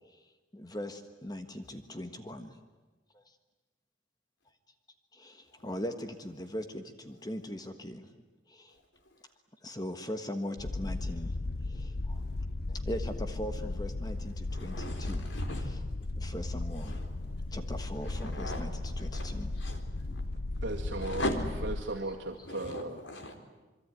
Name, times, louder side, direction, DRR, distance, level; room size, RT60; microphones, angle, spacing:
voice 1, 0.5-2.6 3.1-3.3 5.1-8.1 8.5-8.8 9.6-11.3 11.6-12.2 12.7-15.3 16.2-17.0 17.5-19.5, left 1 dB, 20° left, 8 dB, 1.4 m, -40 dB
sound 1, 10.6-21.8, left 2 dB, 55° left, 0.9 m, -36 dB
voice 2, 14.5-15.8 16.8-17.6 18.0-20.2 21.0-21.4 22.4-23.4, left 1 dB, 80° left, 6 dB, 4.0 m, -40 dB
voice 3, 20.6-21.2 21.6-23.0, right 2 dB, 80° right, 0 dB, 2.3 m, -36 dB
27.0 x 23.0 x 9.6 m, 1.2 s
head